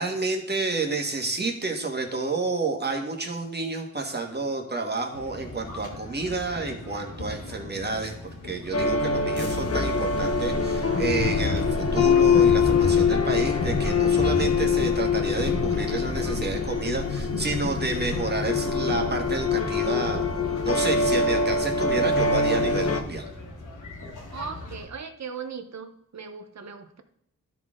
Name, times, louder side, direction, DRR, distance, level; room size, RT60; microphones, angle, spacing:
voice 1, 0.0-8.1 8.4-20.2 20.6-23.3, right 3 dB, 35° right, 2 dB, 1.6 m, -30 dB
sound 1, 5.1-24.9, left 2 dB, 75° left, 1.6 m, -40 dB
sound 2, 8.7-23.0, left 4 dB, 50° left, 1.0 m, -23 dB
voice 2, 24.3-27.0, right 6 dB, 60° right, 8 dB, 0.9 m, -38 dB
12.5 x 4.2 x 3.7 m, 0.74 s
cardioid pair, 60°, 31 cm